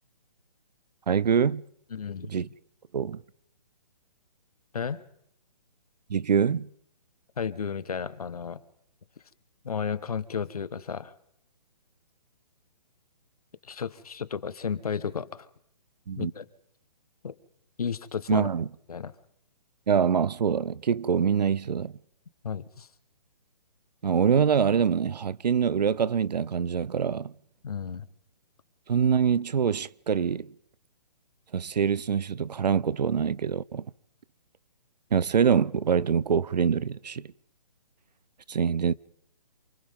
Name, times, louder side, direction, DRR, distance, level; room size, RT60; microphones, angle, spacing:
voice 1, 1.1-1.6 2.3-2.5 2.9-3.2 6.1-6.7 16.1-16.3 18.3-18.7 19.9-21.9 24.0-27.3 28.9-30.5 31.5-33.9 35.1-37.3 38.5-38.9, right 7 dB, 85° right, 0.7 m, -24 dB
voice 2, 1.9-2.3 4.7-5.0 7.4-8.6 9.6-11.1 13.6-15.5 16.2-16.4 17.2-17.3 17.8-18.5 18.9-19.1 22.4-22.9 27.6-28.1, left 6 dB, 65° left, 1.3 m, -33 dB
28.0 x 26.5 x 3.7 m
hypercardioid pair, 180°, 21 cm